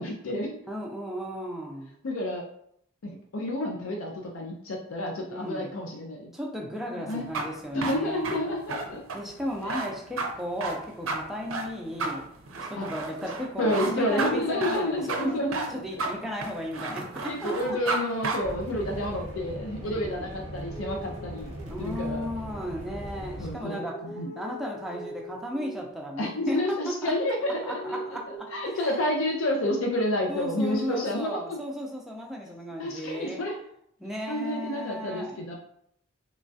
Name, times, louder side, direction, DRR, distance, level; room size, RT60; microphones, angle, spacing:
voice 1, 0.0-0.6 2.0-2.4 3.0-6.3 7.0-7.3 7.7-9.0 9.6-9.9 12.8-12.9 13.6-15.5 17.3-21.5 21.8-22.3 23.4-24.3 26.2-28.0 28.3-31.4 32.8-33.6 34.3-35.6, left 1 dB, 85° left, 1 dB, 0.5 m, -30 dB
voice 2, 0.7-1.9 5.3-5.7 6.3-8.5 9.1-12.2 12.7-15.4 15.7-17.8 19.8-20.2 21.7-24.0 24.4-27.1 27.6-29.0 30.3-33.4 34.0-35.6, equal, ahead, -2 dB, 0.4 m, -35 dB
sound 1, 7.1-18.0 18.2-18.4, right 3 dB, 85° right, 0.4 m, -32 dB
sound 2, 18.4-23.5, right 1 dB, 35° right, 0.8 m, -39 dB
sound 3, 20.7-22.4 23.2-25.9 26.7-29.3 30.4-31.0, right 1 dB, 35° left, 0.6 m, -43 dB
3.1 x 2.3 x 2.6 m, 0.70 s
head